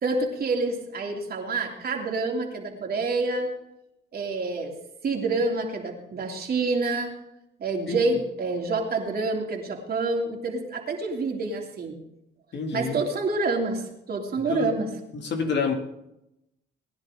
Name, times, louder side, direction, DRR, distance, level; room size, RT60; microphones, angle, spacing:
voice 1, 0.0-3.5 4.1-4.8 5.0-7.1 7.6-12.0 12.7-14.9, right 3 dB, 50° right, 1 dB, 3.1 m, -27 dB
voice 2, 12.5-13.0 14.4-14.7 15.1-15.7, left 5 dB, 60° left, 3 dB, 2.5 m, -28 dB
19.5 x 10.5 x 3.8 m, 0.86 s
cardioid pair, 90°, 20 cm